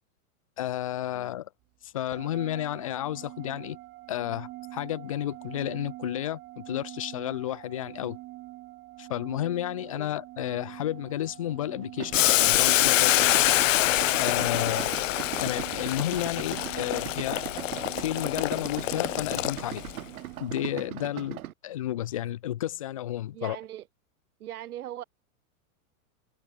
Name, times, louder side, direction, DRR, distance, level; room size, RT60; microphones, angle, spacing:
voice 1, 0.6-1.5 1.8-3.8 4.1-8.2 9.0-13.1 14.1-14.8 15.4-17.4 17.9-19.8 20.4-23.6, left 13 dB, 25° left, 0.4 m, -32 dB
sound 1, 2.1-20.8, right 19 dB, 25° right, 1.5 m, -45 dB
Idling, 12.0-21.5, right 13 dB, 75° right, 3.2 m, -39 dB
Boiling, 12.1-19.9, left 16 dB, 60° left, 0.9 m, -25 dB
voice 2, 14.6-15.0 23.3-23.9 24.4-25.0, right 12 dB, 90° right, 2.9 m, -40 dB
supercardioid pair, 175°, 43 cm